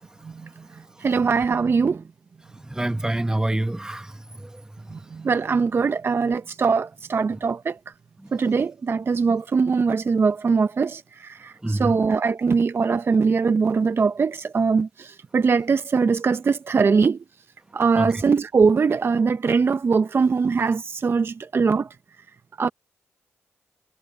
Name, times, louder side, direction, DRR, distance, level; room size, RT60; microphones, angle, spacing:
voice 1, 1.0-2.0 4.9-7.8 8.3-17.2 17.7-21.9 22.6-22.7, right 5 dB, 50° right, 0.8 m, -22 dB
voice 2, 2.6-4.9 8.2-8.3 11.6-12.0 18.0-18.2, right 1 dB, 15° right, 1.2 m, -27 dB
cardioid pair, 60°, 5 cm